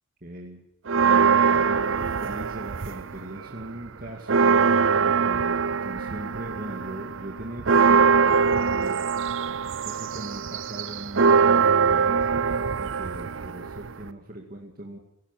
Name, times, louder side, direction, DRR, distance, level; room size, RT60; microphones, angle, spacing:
voice 1, 0.2-0.6 1.1-4.5 5.0-8.1 8.7-9.1 9.8-12.3 12.8-15.0, right 1 dB, 45° right, 0 dB, 2.3 m, -39 dB
sound 1, 0.9-3.2 3.6-14.1, right 5 dB, 70° right, 0.7 m, -22 dB
16.5 x 16.0 x 9.9 m, 0.81 s
head